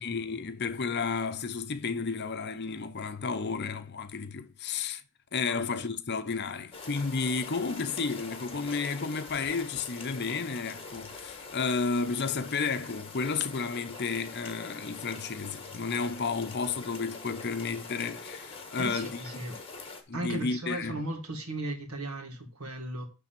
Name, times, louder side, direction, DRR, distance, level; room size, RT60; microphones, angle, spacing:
voice 1, 0.0-5.0 5.3-19.2 20.1-21.0, left 4 dB, 50° left, 0.7 m, -32 dB
sound 1, 6.7-20.0, left 4 dB, 25° left, 1.4 m, -44 dB
voice 2, 18.8-19.5 20.1-23.0, right 1 dB, 85° right, 2.0 m, -36 dB
10.5 x 3.5 x 5.8 m
head